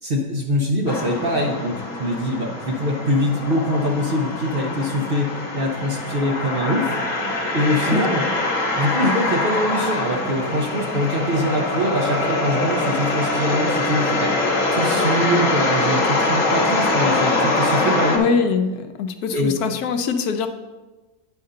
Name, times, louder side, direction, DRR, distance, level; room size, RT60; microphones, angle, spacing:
voice 1, 0.0-6.9 7.5-8.2 8.8-14.4 14.7-18.2 19.3-19.5, equal, 45° right, 0 dB, 0.8 m, -23 dB
sound 1, 0.9-18.2, left 2 dB, 55° left, 1.4 m, -23 dB
voice 2, 18.1-20.5, left 5 dB, 75° left, 8 dB, 1.1 m, -23 dB
9.3 x 5.3 x 3.8 m, 1.2 s
omnidirectional pair, 1.7 m